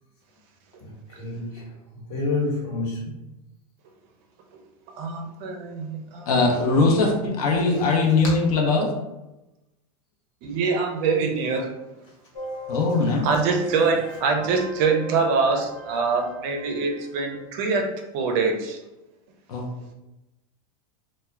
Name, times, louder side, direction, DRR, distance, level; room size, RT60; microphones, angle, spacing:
voice 1, 0.8-3.3 12.1-12.2, left 3 dB, 60° left, -4 dB, 1.3 m, -30 dB
voice 2, 5.0-6.3 7.2-7.3 10.4-11.7 13.2-18.8, right 4 dB, 45° right, 3 dB, 0.4 m, -24 dB
voice 3, 6.3-8.9 12.7-13.3 19.5-19.7, left 3 dB, 80° left, 0 dB, 0.7 m, -21 dB
sound 1, 12.3-17.4, right 2 dB, 25° left, 0.4 m, -37 dB
2.3 x 2.1 x 3.1 m, 0.96 s
supercardioid pair, 150°, 19 cm